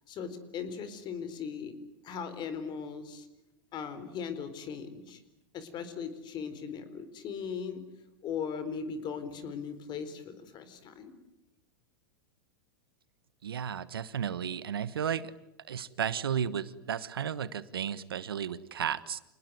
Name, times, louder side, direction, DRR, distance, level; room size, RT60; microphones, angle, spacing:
voice 1, 0.1-1.7 2.0-3.3 3.7-5.2 5.5-7.8 8.2-11.1, left 6 dB, 40° left, 12 dB, 4.2 m, -38 dB
voice 2, 13.4-15.3 15.7-19.2, right 8 dB, 90° right, 16 dB, 1.3 m, -33 dB
27.5 x 20.0 x 9.5 m, 0.91 s
hypercardioid pair, 110°, 12 cm